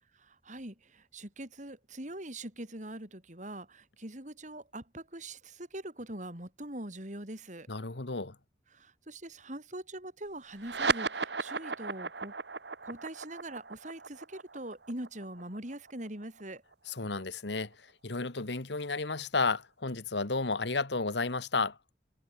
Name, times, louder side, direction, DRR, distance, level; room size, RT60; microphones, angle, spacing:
voice 1, 0.2-7.7 8.7-12.3 12.8-16.6, right 1 dB, 45° right, 5.5 m, -43 dB
voice 2, 7.7-8.4 16.9-21.8, left 3 dB, 75° left, 1.7 m, -32 dB
sound 1, 10.6-17.4, right 4 dB, 75° right, 2.0 m, -36 dB
head